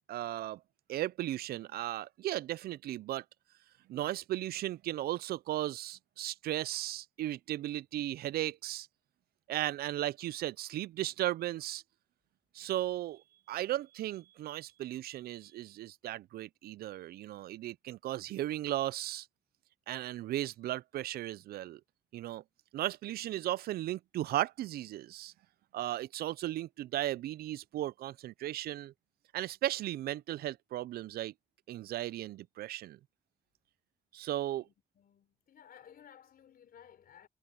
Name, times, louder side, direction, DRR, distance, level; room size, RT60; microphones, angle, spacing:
voice 1, 0.1-0.6 0.9-3.2 3.9-8.9 9.5-11.8 12.5-19.3 19.9-21.8 22.1-22.4 22.7-25.3 25.7-28.9 29.3-31.3 31.7-33.0 34.1-34.6, right 14 dB, 80° right, 0.4 m, -36 dB
voice 2, 34.5-37.3, left 9 dB, 75° left, 3.6 m, -57 dB
supercardioid pair, 45°, 16 cm